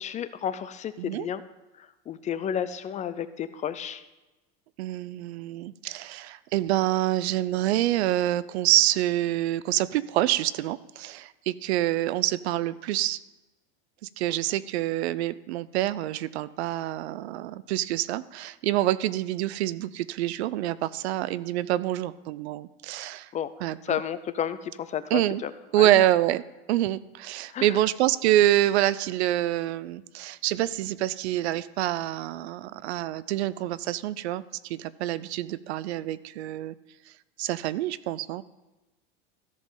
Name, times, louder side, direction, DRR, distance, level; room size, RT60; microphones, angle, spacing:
voice 1, 0.0-1.4 1.8-4.0 23.3-23.5 23.8-25.5 25.8-26.1 27.5-27.7, left 9 dB, 25° left, 13 dB, 0.4 m, -32 dB
voice 2, 4.8-13.2 14.0-23.3 23.6-24.0 25.1-25.4 25.7-26.4 26.7-36.7 37.4-38.4, right 14 dB, 85° right, 17 dB, 0.5 m, -26 dB
14.0 x 5.2 x 5.5 m, 1.1 s
supercardioid pair, 125°, 32 cm